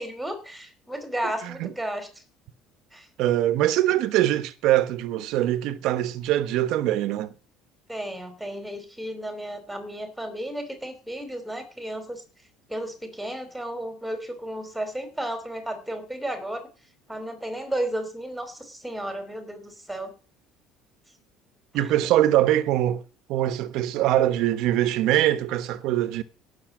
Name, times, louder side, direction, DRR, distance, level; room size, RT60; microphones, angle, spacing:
voice 1, 0.0-2.1 2.9-3.1 7.9-12.2 12.7-16.7 17.1-20.1 21.7-21.9, right 1 dB, ahead, 3.0 m, -33 dB
voice 2, 1.2-1.7 3.2-7.3 21.7-23.0 23.3-26.2, right 13 dB, 60° right, 1.1 m, -23 dB
17.5 x 7.0 x 6.1 m
cardioid pair, 150°, 0 cm